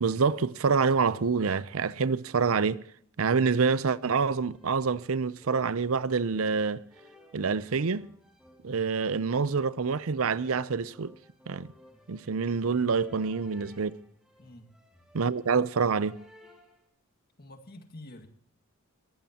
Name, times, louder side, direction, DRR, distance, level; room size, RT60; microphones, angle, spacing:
voice 1, 0.0-2.8 3.2-6.8 7.3-8.1 8.6-11.1 11.5-11.7 12.1-14.0 15.1-16.2, right 5 dB, 65° right, 0.6 m, -27 dB
sound 1, 4.3-16.9, left 1 dB, 5° right, 2.4 m, -58 dB
voice 2, 14.4-14.7 17.4-18.3, left 1 dB, 45° left, 1.8 m, -48 dB
21.0 x 15.5 x 2.9 m
head